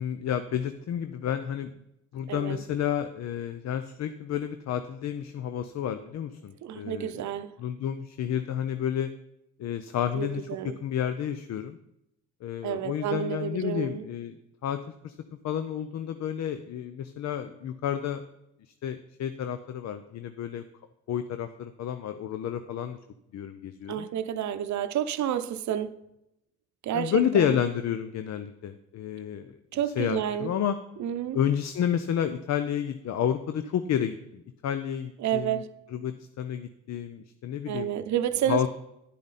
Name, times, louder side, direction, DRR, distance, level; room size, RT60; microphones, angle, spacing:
voice 1, 0.0-1.7 2.1-7.1 7.6-9.1 9.6-11.8 12.4-14.4 14.6-14.8 15.0-15.2 15.4-18.2 18.8-20.6 21.1-23.0 23.3-24.1 26.9-29.5 30.0-30.8 31.3-35.6 35.9-38.0 38.5-38.7, left 9 dB, 60° left, 0.6 m, -30 dB
voice 2, 2.3-2.6 6.6-7.5 10.1-10.7 12.6-14.0 23.9-25.9 26.8-27.6 29.7-30.5 31.0-31.4 35.2-35.7 37.7-38.7, right 10 dB, 70° right, 0.7 m, -30 dB
10.0 x 8.5 x 4.2 m
cardioid pair, 90°, 30 cm